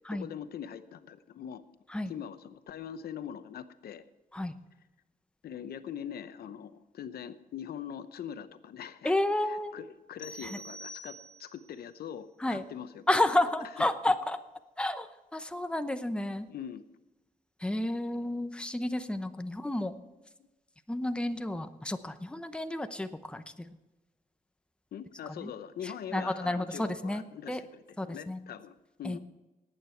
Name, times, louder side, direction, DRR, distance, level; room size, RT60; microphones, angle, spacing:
voice 1, 0.1-1.6 2.1-4.0 5.4-9.1 9.4-13.2 13.8-13.9 16.5-16.8 24.9-29.2, left 9 dB, 90° left, 12 dB, 0.8 m, -42 dB
voice 2, 9.0-9.7 10.4-10.6 12.4-12.6 13.1-14.4 14.8-16.5 17.6-19.9 20.9-23.7 25.3-25.5 25.8-27.6 28.0-28.4 29.0-29.2, left 1 dB, 5° left, 9 dB, 0.8 m, -31 dB
sound 1, 10.2-11.7, equal, 60° left, 2.4 m, -46 dB
18.5 x 8.9 x 4.5 m, 1.1 s
wide cardioid pair, 115°, 15 cm